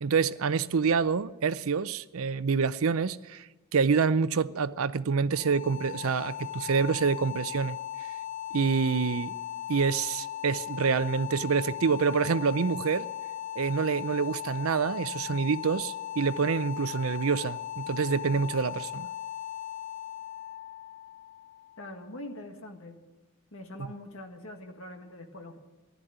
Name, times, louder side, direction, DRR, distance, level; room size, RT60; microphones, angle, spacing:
voice 1, 0.0-3.4 3.7-7.8 8.5-9.3 9.7-13.1 13.6-19.1, right 5 dB, 70° right, 0.5 m, -27 dB
sound 1, 5.3-22.2, left 11 dB, 80° left, 1.1 m, -38 dB
voice 2, 21.8-23.0 23.5-25.6, left 1 dB, 65° left, 1.7 m, -43 dB
15.0 x 11.5 x 7.9 m
head